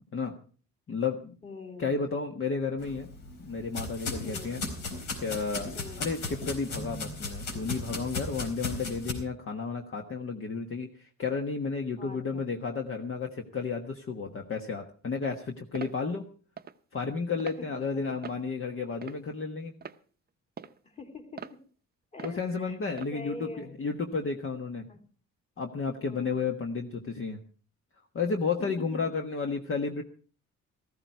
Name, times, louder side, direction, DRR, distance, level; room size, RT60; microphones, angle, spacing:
voice 1, 0.9-1.3 1.8-3.1 3.4-4.6 5.2-16.2 16.9-19.7 22.2-24.9 25.6-27.4 28.1-30.0, left 4 dB, 45° left, 3 dB, 1.4 m, -32 dB
voice 2, 1.4-2.0 4.2-4.6 5.7-6.1 12.0-12.4 17.6-18.2 20.8-21.6 22.1-22.8 23.1-23.8 24.9-25.0 25.9-26.5 28.6-29.0, left 2 dB, 20° left, 4 dB, 2.5 m, -44 dB
sound 1, 2.8-9.1, left 3 dB, 75° left, 4.3 m, -36 dB
sound 2, 15.7-16.0 16.6-16.8 17.4-17.6 18.2-18.5 19.0-19.4 19.8-20.0 20.6-20.8 21.4-21.6 22.2-22.4 23.0-23.2, right 7 dB, 30° right, 0.7 m, -42 dB
14.5 x 14.0 x 4.6 m, 0.41 s
cardioid pair, 90°, 30 cm